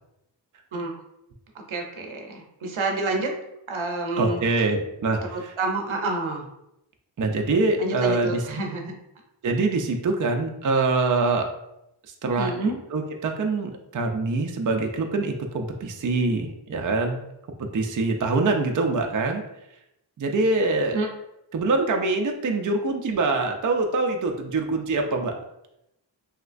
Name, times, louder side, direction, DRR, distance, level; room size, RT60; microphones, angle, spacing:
voice 1, 1.5-3.4 3.7-4.4 5.3-6.4 7.8-8.9 12.4-12.7 20.9-21.1, right 3 dB, 80° right, 2 dB, 0.7 m, -28 dB
voice 2, 4.2-5.5 7.2-8.4 9.4-11.5 12.2-17.2 17.6-19.4 20.2-21.0 21.5-25.3, right 3 dB, 45° right, 3 dB, 0.4 m, -24 dB
3.1 x 2.9 x 2.5 m, 0.85 s
wide cardioid pair, 45°, 48 cm